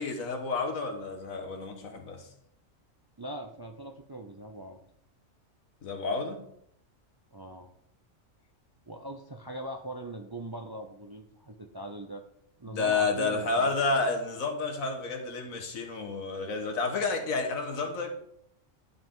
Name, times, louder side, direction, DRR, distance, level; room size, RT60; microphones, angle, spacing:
voice 1, 0.0-2.3 5.8-6.5 12.7-18.1, left 3 dB, 90° left, 1.7 m, -30 dB
voice 2, 3.2-4.8 7.3-7.7 8.9-12.2 12.6-13.8, right 1 dB, 35° right, 0.4 m, -41 dB
12.0 x 5.4 x 3.7 m
omnidirectional pair, 1.4 m